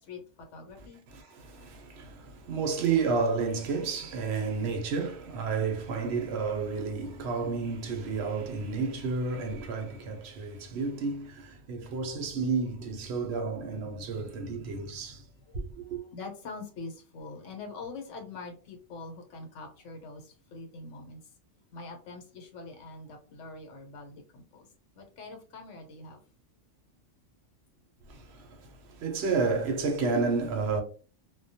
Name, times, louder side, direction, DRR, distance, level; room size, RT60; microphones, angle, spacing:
voice 1, 0.0-1.0 4.6-4.8 14.7-14.8 15.2-21.2 21.7-24.7 24.9-26.2, left 3 dB, 75° left, 1.0 m, -44 dB
voice 2, 0.8-15.2 15.7-16.0 28.1-30.8, right 4 dB, 65° right, 0.8 m, -31 dB
2.2 x 2.1 x 2.6 m
omnidirectional pair, 1.3 m